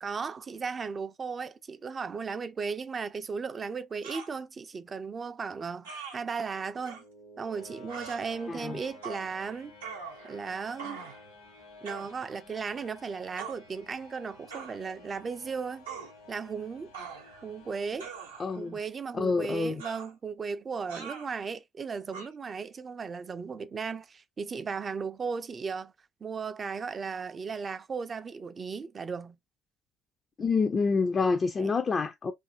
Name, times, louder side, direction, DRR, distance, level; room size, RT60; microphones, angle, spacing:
voice 1, 0.0-7.0 7.4-9.7 10.2-11.0 11.8-15.9 16.3-16.9 17.4-18.1 18.6-25.9 26.2-29.4 31.6-31.7, right 5 dB, 35° right, 0.3 m, -36 dB
sound 1, 4.0-4.3 5.8-6.2 6.8-7.0 7.9-8.2 9.0-9.3 9.8-10.4 10.8-11.2 11.9-12.1 13.4-13.6 14.5-14.8 15.9-16.1 16.9-17.5 18.0-18.6 19.8-20.1 20.9-21.3 22.1-22.3, right 6 dB, 85° right, 0.7 m, -42 dB
sound 2, 6.1-19.1, left 2 dB, 75° left, 1.1 m, -53 dB
voice 2, 8.5-8.8 18.4-18.8 19.1-19.8 30.4-32.3, left 4 dB, 35° left, 0.4 m, -27 dB
2.6 x 2.5 x 2.6 m
hypercardioid pair, 55°, 0 cm